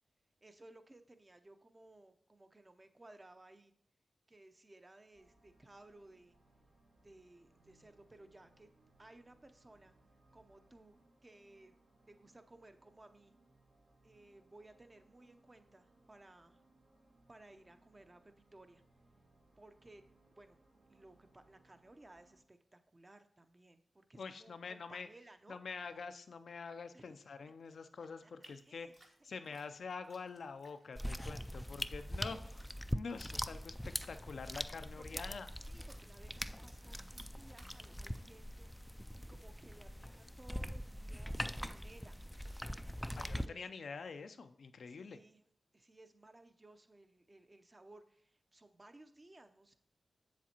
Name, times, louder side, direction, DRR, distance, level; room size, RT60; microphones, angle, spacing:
voice 1, 0.4-3.7 4.3-6.4 7.0-8.7 9.0-9.9 10.3-11.8 12.1-13.3 14.0-16.6 17.3-18.8 19.6-20.0 20.4-20.6 20.9-25.6 26.9-27.1 28.2-28.9 32.2-32.4 35.0-42.2 42.9-43.7 44.9-45.5 45.7-49.8, right 2 dB, 30° right, 9 dB, 0.7 m, -60 dB
sound 1, 5.1-22.4, right 2 dB, 80° right, 1.6 m, -70 dB
voice 2, 24.2-25.1 25.5-32.6 32.9-35.5 43.2-45.2, left 5 dB, 80° left, 9 dB, 0.5 m, -46 dB
sound 2, 28.4-39.2, right 2 dB, 55° right, 1.3 m, -67 dB
sound 3, 31.0-43.5, equal, 5° left, 0.3 m, -42 dB
7.3 x 7.1 x 2.9 m, 0.66 s
cardioid pair, 45°, 0 cm